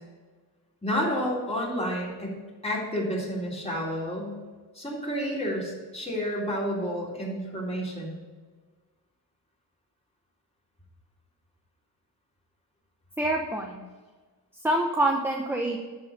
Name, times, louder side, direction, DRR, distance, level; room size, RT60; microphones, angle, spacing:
voice 1, 0.8-2.4 2.6-4.4 4.7-8.1, equal, 15° left, -4 dB, 3.6 m, -30 dB
voice 2, 13.2-13.8 14.6-15.8, right 1 dB, 5° right, 1 dB, 0.9 m, -26 dB
12.0 x 4.9 x 6.8 m, 1.4 s
wide cardioid pair, 105°, 41 cm